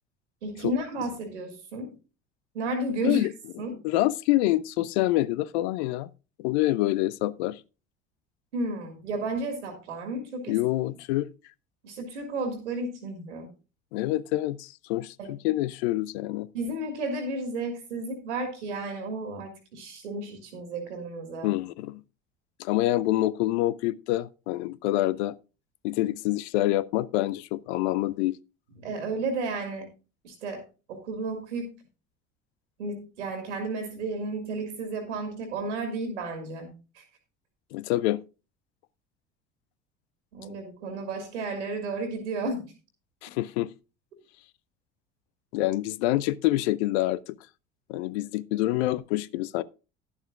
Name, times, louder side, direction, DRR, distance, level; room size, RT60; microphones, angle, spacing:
voice 1, 0.4-1.9 2.5-3.2 3.6-3.7 8.5-10.6 11.8-13.5 15.2-15.3 16.5-21.5 28.8-29.9 30.2-30.6 30.9-31.7 32.8-37.0 40.3-42.7, right 2 dB, 80° right, 2.1 m, -33 dB
voice 2, 3.8-6.1 6.4-7.6 10.5-11.3 13.9-16.5 21.4-22.0 22.6-25.4 25.8-28.4 37.7-38.2 43.2-43.7 45.5-47.4 47.9-49.6, left 16 dB, 65° left, 0.6 m, -26 dB
12.0 x 11.0 x 2.4 m
figure-of-eight pair, 60°, 36 cm